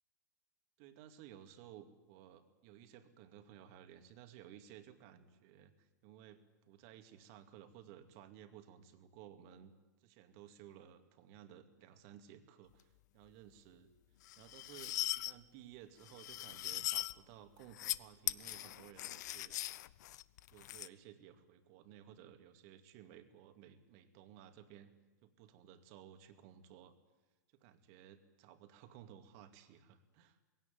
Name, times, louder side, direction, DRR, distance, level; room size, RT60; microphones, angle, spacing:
voice 1, 0.8-9.7 10.0-13.9 14.4-19.6 20.5-24.9 25.2-26.9 27.5-30.4, right 10 dB, 55° right, 7 dB, 2.4 m, -57 dB
sound 1, 14.3-15.3 16.1-17.1 17.6-18.0 18.3-20.9, left 14 dB, 70° left, 0.7 m, -40 dB
20.0 x 17.0 x 9.4 m, 1.2 s
hypercardioid pair, 120°, 10 cm